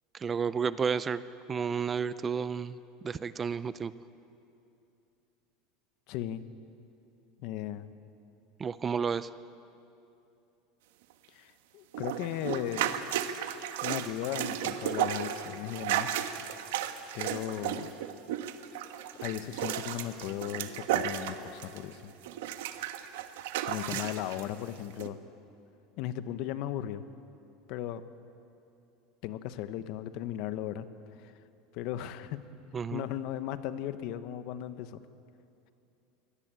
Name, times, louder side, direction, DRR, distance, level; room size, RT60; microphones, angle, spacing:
voice 1, 0.1-1.2 1.5-2.8 3.0-3.9 8.6-9.3 32.7-33.1, right 6 dB, 20° right, 15 dB, 0.4 m, -31 dB
voice 2, 6.1-6.4 7.4-7.9 11.3-12.9 13.8-16.2 17.1-17.9 19.2-22.1 23.7-25.2 26.0-27.0 27.7-28.0 29.2-30.9 31.2-31.3 31.7-32.4 32.9-35.0, left 12 dB, 55° left, 12 dB, 1.1 m, -36 dB
sound 1, 11.9-21.9 22.2-24.4 25.0-25.1, right 11 dB, 85° right, 1.4 m, -34 dB
23.5 x 18.5 x 9.0 m, 2.7 s
supercardioid pair, 155°, 0 cm